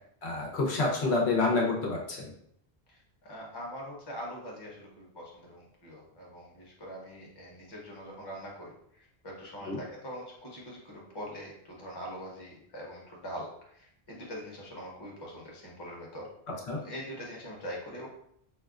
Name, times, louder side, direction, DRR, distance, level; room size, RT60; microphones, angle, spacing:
voice 1, 0.2-2.3 9.7-9.8 16.5-16.8, left 3 dB, 85° left, -1 dB, 1.0 m, -28 dB
voice 2, 2.9-16.3 16.8-18.1, equal, 25° left, -3 dB, 0.8 m, -43 dB
4.6 x 2.2 x 2.4 m, 0.70 s
omnidirectional pair, 1.1 m